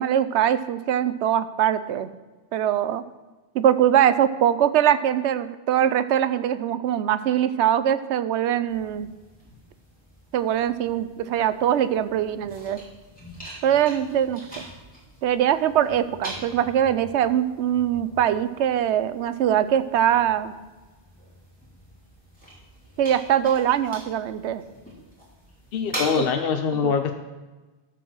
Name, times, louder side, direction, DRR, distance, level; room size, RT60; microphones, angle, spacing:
voice 1, 0.0-2.1 2.5-3.0 3.5-9.1 10.3-12.8 13.6-14.6 15.2-20.5 23.0-24.6 26.8-26.9, right 10 dB, 85° right, 13 dB, 0.9 m, -22 dB
sound 1, 8.7-26.2, right 1 dB, 5° left, 3.1 m, -43 dB
voice 2, 25.7-27.1, left 6 dB, 60° left, 6 dB, 0.8 m, -23 dB
13.5 x 4.6 x 6.1 m, 1.2 s
omnidirectional pair, 1.1 m